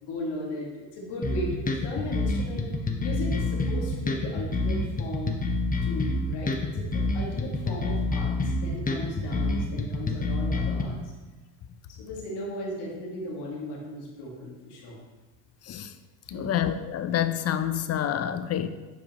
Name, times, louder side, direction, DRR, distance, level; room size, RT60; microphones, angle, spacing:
voice 1, 0.0-2.7 3.0-5.3 5.8-11.1 12.0-15.0 16.2-16.5, left 1 dB, 55° left, -3 dB, 2.0 m, -36 dB
sound 1, 1.2-10.8, left 2 dB, 20° left, 0.9 m, -27 dB
voice 2, 16.4-18.7, left 10 dB, 35° left, 10 dB, 0.5 m, -27 dB
8.3 x 5.0 x 3.0 m, 1.2 s
supercardioid pair, 80°, 46 cm